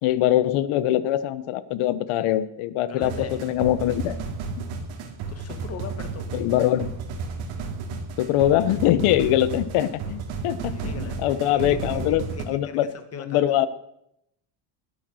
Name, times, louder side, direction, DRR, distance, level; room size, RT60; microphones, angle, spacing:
voice 1, 0.0-3.1 3.4-4.2 6.3-6.9 8.2-12.9 13.3-13.7, left 13 dB, 85° left, 15 dB, 1.2 m, -23 dB
voice 2, 2.9-3.4 5.3-6.3 10.3-13.6, left 6 dB, 30° left, 8 dB, 1.5 m, -39 dB
sound 1, 3.0-12.5, right 4 dB, 70° right, 2.6 m, -33 dB
20.5 x 8.4 x 6.4 m, 0.80 s
cardioid pair, 170°, 49 cm